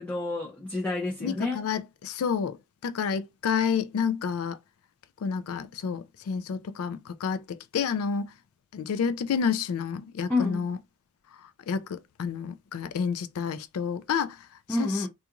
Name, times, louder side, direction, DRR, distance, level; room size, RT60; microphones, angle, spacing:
voice 1, 0.0-1.7 10.3-10.7 14.7-15.1, left 2 dB, 5° left, 0.5 m, -29 dB
voice 2, 1.2-2.6 2.8-4.6 5.2-8.3 8.7-10.8 11.7-14.4 14.8-15.0, left 6 dB, 75° left, 0.3 m, -29 dB
2.4 x 2.3 x 2.9 m
head